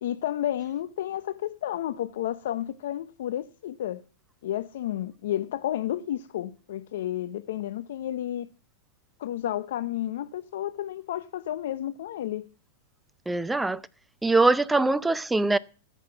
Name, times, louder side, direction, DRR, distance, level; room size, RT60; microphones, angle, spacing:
voice 1, 0.0-4.0 4.4-8.5 9.2-12.5, left 12 dB, 75° left, 0.7 m, -31 dB
voice 2, 13.3-13.8 14.2-15.6, right 3 dB, 5° right, 0.6 m, -22 dB
14.5 x 5.8 x 9.6 m
hypercardioid pair, 125°, 0 cm